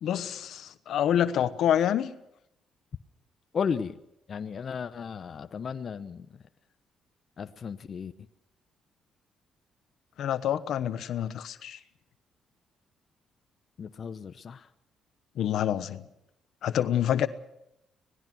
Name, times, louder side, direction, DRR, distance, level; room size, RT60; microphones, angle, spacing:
voice 1, 0.0-2.1 10.2-11.8 15.4-16.0 16.6-17.3, left 10 dB, 75° left, 12 dB, 1.1 m, -27 dB
voice 2, 3.5-4.0 4.3-6.3 7.4-8.1 13.8-14.6, left 6 dB, 50° left, 9 dB, 0.9 m, -34 dB
25.5 x 19.5 x 6.2 m, 0.81 s
cardioid pair, 90°, 0 cm